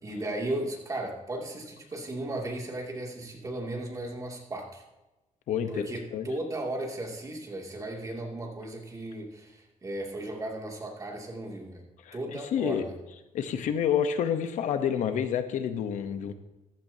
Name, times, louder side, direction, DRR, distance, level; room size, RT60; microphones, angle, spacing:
voice 1, 0.0-4.8 5.7-11.8 12.1-12.9, right 1 dB, 25° right, 0 dB, 2.6 m, -36 dB
voice 2, 5.5-6.3 12.0-12.8 13.3-16.3, left 8 dB, 85° left, 9 dB, 1.0 m, -29 dB
14.5 x 14.0 x 2.8 m, 1.0 s
cardioid pair, 135°, 12 cm